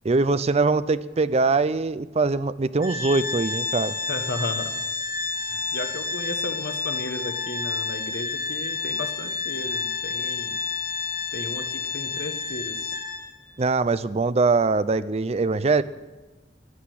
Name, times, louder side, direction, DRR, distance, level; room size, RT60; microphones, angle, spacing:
voice 1, 0.0-4.0 13.6-15.8, right 3 dB, 35° right, 15 dB, 0.5 m, -22 dB
Organ, 2.8-13.5, left 4 dB, 55° left, 2.0 m, -30 dB
voice 2, 4.1-4.7 5.4-10.6 11.3-13.0, left 2 dB, 70° left, 7 dB, 1.4 m, -34 dB
14.5 x 10.5 x 7.7 m, 1.2 s
head